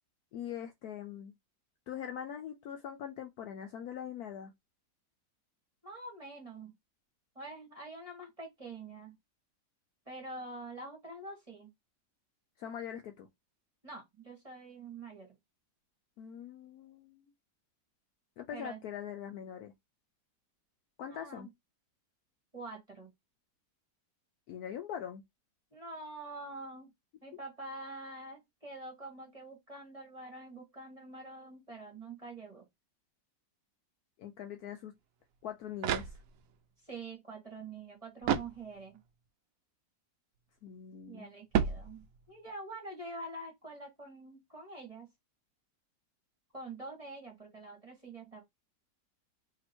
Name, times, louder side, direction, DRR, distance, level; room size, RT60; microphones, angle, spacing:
voice 1, 0.3-1.3 1.9-4.5 12.6-13.3 16.2-17.2 18.4-19.7 21.0-21.5 24.5-25.2 34.2-34.9 35.4-36.2 40.6-41.3, left 9 dB, 70° left, 1.0 m, -42 dB
voice 2, 5.8-6.7 7.3-9.1 10.1-11.7 13.8-15.3 18.5-18.8 21.0-21.5 22.5-23.1 25.7-26.9 27.2-32.6 36.9-39.0 41.1-45.1 46.5-48.4, right 2 dB, 20° right, 1.2 m, -46 dB
sound 1, 35.3-36.7 38.2-39.1 41.5-42.4, right 8 dB, 80° right, 0.7 m, -33 dB
2.9 x 2.9 x 4.2 m
omnidirectional pair, 1.9 m